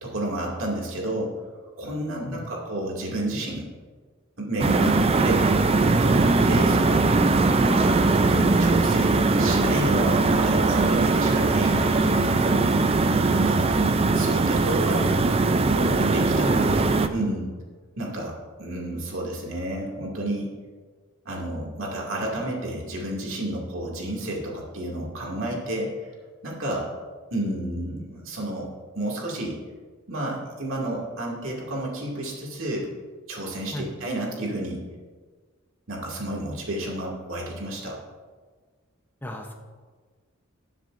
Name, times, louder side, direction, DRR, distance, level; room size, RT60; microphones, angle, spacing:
voice 1, 0.0-1.3 1.8-3.7 4.4-7.1 7.6-12.8 13.3-13.7 14.1-15.2 15.7-17.5 18.0-20.5 21.2-26.1 26.4-26.9 27.3-28.7 28.9-29.6 30.1-32.9 33.3-34.8 35.9-38.0, right 1 dB, 70° right, -2 dB, 2.4 m, -31 dB
sound 1, 4.6-17.1, right 3 dB, 30° right, 0.4 m, -20 dB
voice 2, 16.3-17.0 33.7-33.9 39.2-39.5, left 1 dB, 10° left, 2 dB, 0.8 m, -34 dB
19.5 x 7.5 x 2.6 m, 1.5 s
head